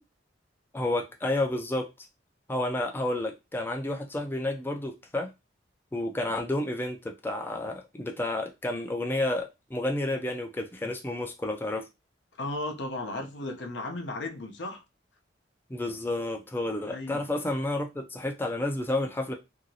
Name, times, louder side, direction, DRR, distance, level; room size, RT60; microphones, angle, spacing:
voice 1, 0.7-1.9 2.5-5.3 5.9-11.9 15.7-19.3, left 1 dB, 10° left, 0.3 m, -30 dB
voice 2, 12.3-14.8 16.9-17.2, left 2 dB, 70° left, 0.7 m, -35 dB
2.9 x 2.6 x 2.7 m
head